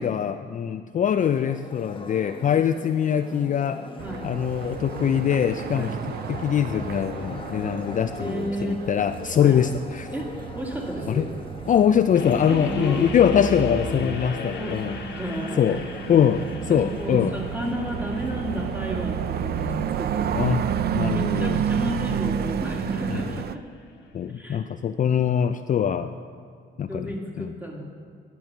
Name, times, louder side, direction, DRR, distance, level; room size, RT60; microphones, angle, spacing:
voice 1, 0.0-3.8 4.2-5.9 6.3-10.1 11.1-11.3 11.7-15.0 15.6-15.8 16.1-17.3 20.3-20.6 20.9-21.6 23.1-23.2 24.1-26.1 26.8-27.1 27.4-27.5, left 8 dB, 40° left, 9 dB, 0.4 m, -23 dB
sound 1, 1.2-18.7, left 3 dB, 25° left, 1.2 m, -42 dB
sound 2, 4.0-23.6, right 8 dB, 55° right, 0.4 m, -31 dB
voice 2, 8.2-8.9 9.4-9.6 10.1-11.3 12.5-13.0 14.6-14.8 15.1-15.7 16.7-20.5 21.1-23.6 24.3-24.6 26.9-27.8, equal, 10° right, -1 dB, 2.1 m, -32 dB
sound 3, 12.1-23.2, left 2 dB, 60° left, 1.3 m, -36 dB
11.0 x 7.0 x 6.0 m, 2.2 s
cardioid pair, 90°, 20 cm